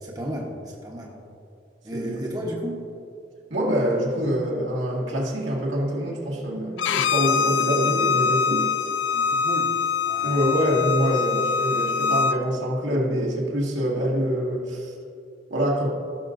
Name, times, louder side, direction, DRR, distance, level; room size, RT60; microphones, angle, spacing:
voice 1, 0.0-1.2 1.8-2.8 9.1-9.7 10.1-10.4, equal, 20° right, -2 dB, 1.0 m, -33 dB
voice 2, 1.9-2.2 3.5-8.7 10.2-14.9 15.5-15.9, equal, 85° right, -4 dB, 2.1 m, -25 dB
Bowed string instrument, 6.8-12.4, left 6 dB, 90° left, 0.4 m, -24 dB
16.5 x 6.7 x 2.6 m, 2.5 s
head